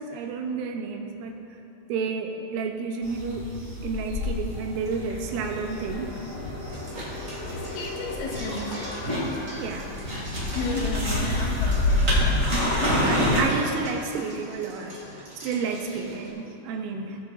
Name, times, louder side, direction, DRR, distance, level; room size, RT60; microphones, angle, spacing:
voice 1, 0.0-1.3 1.9-3.5 3.8-6.2 9.6-9.9 12.6-14.9 15.4-17.2, right 5 dB, 90° right, 3 dB, 3.4 m, -31 dB
sound 1, 3.0-13.4, left 1 dB, 25° right, 1.8 m, -27 dB
sound 2, 4.5-15.2, left 1 dB, 50° left, 2.0 m, -42 dB
sound 3, 6.7-16.3, right 1 dB, 70° right, 0.8 m, -44 dB
voice 2, 7.7-9.0 10.6-12.3, left 3 dB, 85° left, -2 dB, 3.7 m, -33 dB
19.5 x 7.4 x 2.6 m, 2.9 s
omnidirectional pair, 5.4 m